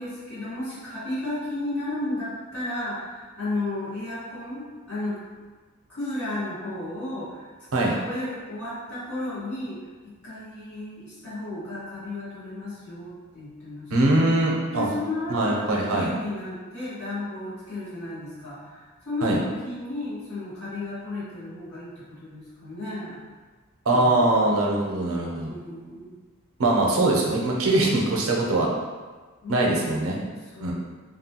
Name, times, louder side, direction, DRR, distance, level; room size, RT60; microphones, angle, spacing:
voice 1, 0.0-5.2 5.9-9.8 10.0-14.1 14.7-23.3 23.9-24.6 25.5-26.1 29.4-30.0 30.3-30.7, left 2 dB, 80° left, -10 dB, 1.4 m, -34 dB
voice 2, 13.9-14.9 15.3-16.1 19.2-19.4 23.9-25.5 26.6-28.7 29.5-30.2 30.6-30.7, right 2 dB, 70° right, -1 dB, 0.5 m, -22 dB
2.8 x 2.2 x 2.8 m, 1.4 s
head